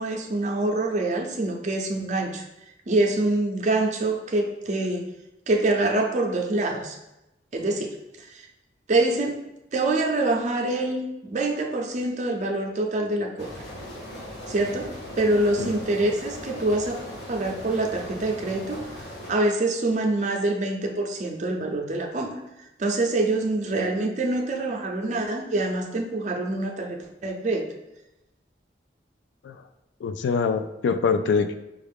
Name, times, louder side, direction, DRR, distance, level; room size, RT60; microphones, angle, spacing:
voice 1, 0.0-2.5 2.9-5.1 5.5-7.0 7.5-8.5 8.9-9.4 9.7-13.5 14.5-14.9 15.2-17.0 17.3-19.0 19.3-22.3 22.8-27.7, right 2 dB, 40° right, 2 dB, 0.5 m, -25 dB
sound 1, 13.4-19.3, left 1 dB, 70° left, 1.1 m, -39 dB
voice 2, 30.0-31.5, left 5 dB, 90° left, 10 dB, 0.3 m, -24 dB
5.1 x 2.4 x 3.4 m, 0.93 s
head